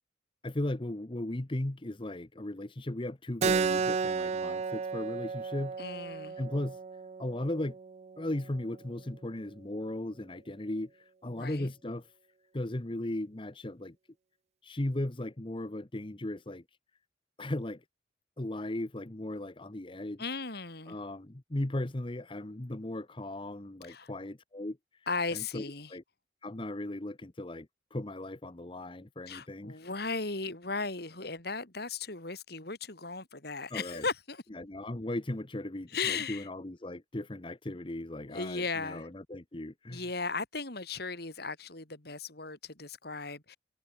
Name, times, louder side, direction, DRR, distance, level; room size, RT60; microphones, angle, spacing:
voice 1, 0.4-6.8 7.2-7.8 8.2-12.1 12.5-14.0 14.6-16.6 17.4-17.8 18.4-20.2 20.9-25.6 25.9-26.0 26.4-29.8 33.7-34.1 34.5-40.1, left 1 dB, 30° left, 1.0 m, -37 dB
Keyboard (musical), 3.4-8.5, right 5 dB, 35° right, 0.3 m, -33 dB
voice 2, 5.8-6.4 11.3-11.7 20.2-21.0 23.9-24.1 25.1-25.9 29.3-34.4 35.9-36.5 38.3-39.1 39.9-43.6, left 4 dB, 60° left, 3.7 m, -36 dB
head